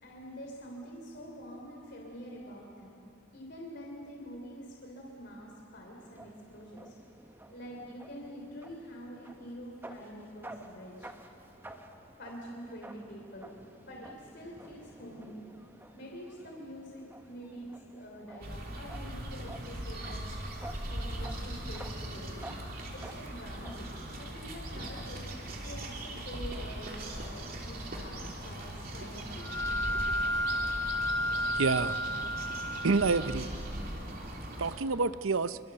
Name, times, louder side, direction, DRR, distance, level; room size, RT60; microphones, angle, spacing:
voice 1, 0.0-3.0 3.3-6.9 7.5-11.1 12.2-13.5 13.8-15.4 15.9-20.2 20.9-22.4 22.9-23.9 24.2-25.3 25.6-29.5, equal, 55° left, -1 dB, 3.3 m, -46 dB
sound 1, 6.0-23.9, right 1 dB, 10° right, 1.2 m, -51 dB
sound 2, 18.4-34.8, right 1 dB, 45° right, 3.1 m, -40 dB
sound 3, 29.4-33.4, equal, 15° left, 0.8 m, -32 dB
voice 2, 31.6-32.0 32.8-33.5 34.6-35.6, right 4 dB, 80° right, 14 dB, 0.7 m, -28 dB
26.5 x 24.0 x 6.8 m, 2.6 s
head